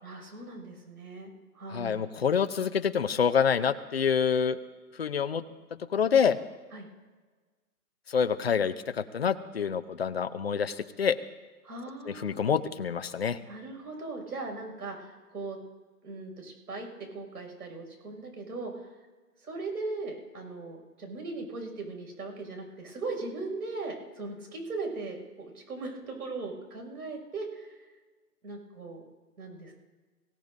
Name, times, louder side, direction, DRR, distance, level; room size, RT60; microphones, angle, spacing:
voice 1, 0.0-2.1 6.7-6.9 11.6-12.4 13.5-15.6 16.0-18.7 19.4-27.8 28.4-29.0 29.4-29.7, right 3 dB, 75° right, 2 dB, 6.2 m, -39 dB
voice 2, 1.7-4.6 4.9-5.4 5.9-6.4 8.1-11.2 12.1-13.4, left 7 dB, 40° left, 11 dB, 0.6 m, -27 dB
23.5 x 17.0 x 2.7 m, 1.3 s
hypercardioid pair, 170°, 47 cm